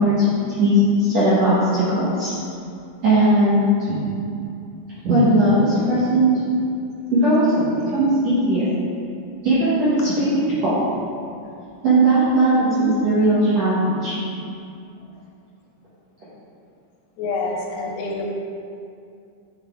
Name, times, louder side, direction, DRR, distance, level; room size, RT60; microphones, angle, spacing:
voice 1, 0.0-2.3 3.0-4.0 5.0-6.3 7.1-8.7 9.4-10.8 11.8-14.2, right 1 dB, 75° right, -10 dB, 1.6 m, -18 dB
voice 2, 17.2-18.3, left 3 dB, 85° left, -1 dB, 2.9 m, -27 dB
8.6 x 4.0 x 3.5 m, 2.5 s
omnidirectional pair, 4.6 m